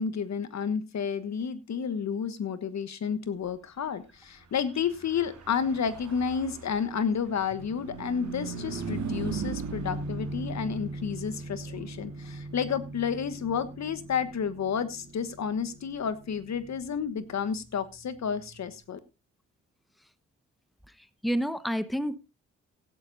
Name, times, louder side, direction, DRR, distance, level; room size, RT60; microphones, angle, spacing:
voice 1, 0.0-19.0, left 7 dB, 55° left, 13 dB, 1.3 m, -31 dB
Car passing by / Truck, 4.7-18.4, right 4 dB, 60° right, 3.0 m, -39 dB
voice 2, 21.0-22.2, equal, ahead, 14 dB, 1.2 m, -29 dB
16.5 x 12.0 x 2.7 m, 0.26 s
hypercardioid pair, 45°, 34 cm